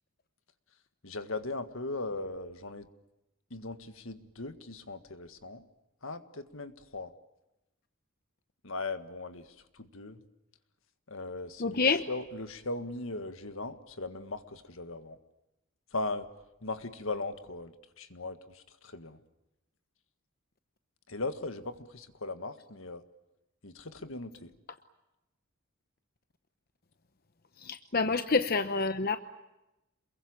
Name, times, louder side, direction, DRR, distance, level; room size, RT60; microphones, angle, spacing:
voice 1, 1.0-2.9 3.5-5.7 6.0-7.1 8.6-10.2 11.1-15.2 15.9-16.3 16.6-19.2 21.1-23.0 23.6-24.5, left 2 dB, 70° left, 10 dB, 1.8 m, -39 dB
voice 2, 11.6-12.0 27.6-29.2, left 4 dB, 45° left, 9 dB, 0.9 m, -27 dB
28.0 x 22.0 x 8.8 m, 0.95 s
head